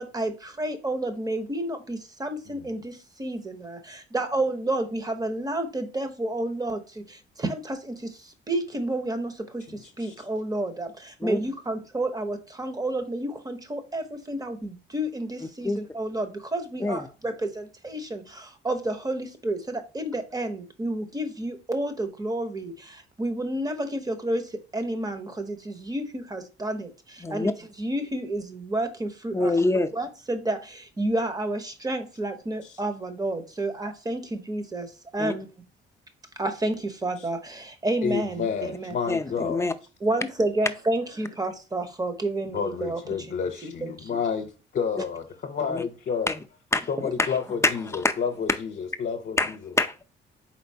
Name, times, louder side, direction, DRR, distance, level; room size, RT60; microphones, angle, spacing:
voice 1, 0.0-27.5 27.8-29.5 29.9-35.5 36.4-39.0 40.0-43.0 43.6-44.2, right 1 dB, 20° right, 0.8 m, -30 dB
voice 2, 9.7-10.1 32.6-32.8 38.0-39.7 42.5-46.3 46.9-49.6, left 6 dB, 55° left, 0.8 m, -30 dB
voice 3, 27.2-27.5 29.3-29.9 35.2-35.3 39.1-39.7 45.7-45.8 46.3-46.4 46.7-46.9 47.6-48.1 49.4-50.0, left 2 dB, 15° left, 0.5 m, -25 dB
4.4 x 3.8 x 2.7 m
cardioid pair, 90°, 20 cm